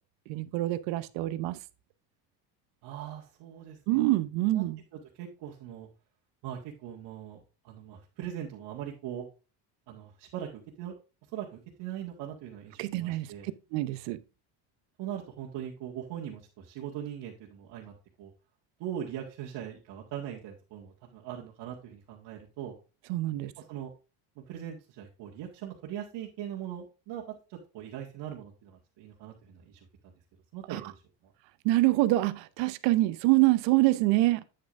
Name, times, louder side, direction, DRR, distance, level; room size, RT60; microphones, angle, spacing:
voice 1, 0.3-1.6 3.9-4.8 12.8-13.3 13.7-14.2 23.1-23.5 30.7-30.8 31.6-34.4, right 18 dB, 85° right, 0.8 m, -25 dB
voice 2, 2.8-4.0 4.5-4.6 4.9-5.9 6.4-9.3 9.9-11.0 11.3-13.5 15.0-18.3 18.8-22.7 23.6-23.9 24.4-30.1 30.5-31.3, right 10 dB, 70° right, 1.9 m, -41 dB
8.8 x 8.6 x 2.5 m
cardioid pair, 130°, 42 cm